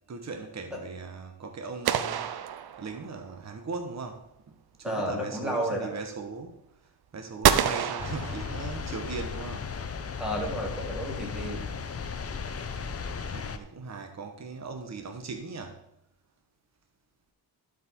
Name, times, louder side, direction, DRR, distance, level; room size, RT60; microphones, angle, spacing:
voice 1, 0.1-2.3 2.8-9.7 11.3-11.9 13.3-15.8, right 4 dB, 45° right, 4 dB, 1.1 m, -39 dB
sound 1, 1.9-3.3 7.4-9.0, right 9 dB, 70° right, 0.6 m, -27 dB
voice 2, 4.8-5.9 10.2-11.6, equal, ahead, -2 dB, 3.0 m, -31 dB
sound 2, 8.0-13.6, left 5 dB, 35° left, 0.7 m, -36 dB
12.0 x 5.1 x 4.4 m, 0.79 s
cardioid pair, 90°, 39 cm